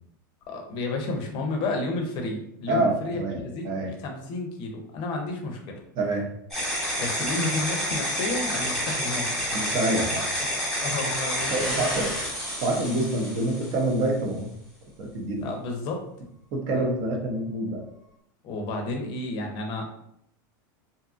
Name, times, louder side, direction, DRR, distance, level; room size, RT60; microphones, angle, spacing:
voice 1, 0.5-5.8 7.0-9.4 10.8-12.1 15.4-16.0 16.7-16.8 18.4-19.8, left 2 dB, 45° left, 2 dB, 0.5 m, -31 dB
voice 2, 2.7-3.4 3.6-3.9 6.0-6.3 9.5-10.2 11.5-12.1 12.6-14.5 15.0-15.5 16.5-17.8, right 2 dB, 50° right, 1 dB, 0.7 m, -26 dB
sound 1, 6.5-14.0, equal, 5° left, 1.0 m, -29 dB
2.6 x 2.4 x 2.5 m, 0.73 s
supercardioid pair, 145°, 11 cm